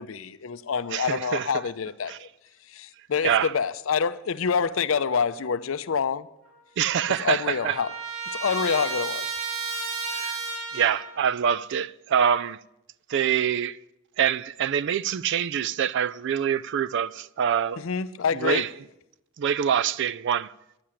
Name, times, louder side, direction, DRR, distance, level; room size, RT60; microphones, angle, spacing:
voice 1, 0.0-2.3 2.7-6.3 7.2-7.9 8.3-9.3 17.8-18.7, left 6 dB, 65° left, 0.5 m, -27 dB
voice 2, 0.9-1.5 2.1-2.2 3.2-3.5 6.8-7.8 10.1-10.3 10.7-12.6 13.1-13.8 14.2-17.8 18.3-18.7 19.4-20.5, right 8 dB, 60° right, 0.3 m, -25 dB
Trumpet, 6.5-6.6 6.8-11.2, right 4 dB, 85° right, 2.8 m, -33 dB
10.0 x 9.7 x 7.5 m
head